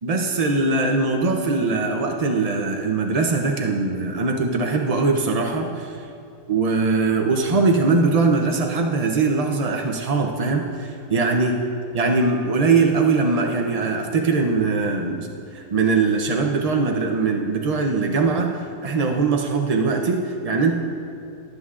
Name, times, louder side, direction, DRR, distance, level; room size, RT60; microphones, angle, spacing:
voice 1, 0.0-6.1 6.5-11.6 11.9-20.7, right 3 dB, 60° right, 1 dB, 0.4 m, -21 dB
20.5 x 8.0 x 2.4 m, 2.6 s
omnidirectional pair, 1.6 m